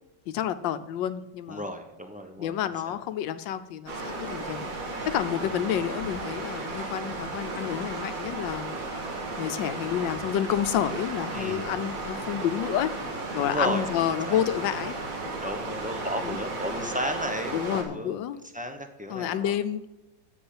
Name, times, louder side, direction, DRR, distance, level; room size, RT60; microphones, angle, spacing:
voice 1, 0.3-1.7 2.4-4.6 5.1-8.8 9.4-12.9 13.3-15.0 16.2-16.4 17.5-18.4 19.1-19.8, left 10 dB, 90° left, 12 dB, 1.4 m, -29 dB
voice 2, 1.5-2.5 2.9-3.0 11.3-11.7 13.4-13.8 14.3-14.4 15.4-18.2 18.5-19.5, equal, 5° right, 4 dB, 0.6 m, -33 dB
sound 1, 3.9-17.8, right 2 dB, 50° right, 2.1 m, -34 dB
7.9 x 7.1 x 8.5 m, 1.0 s
omnidirectional pair, 1.9 m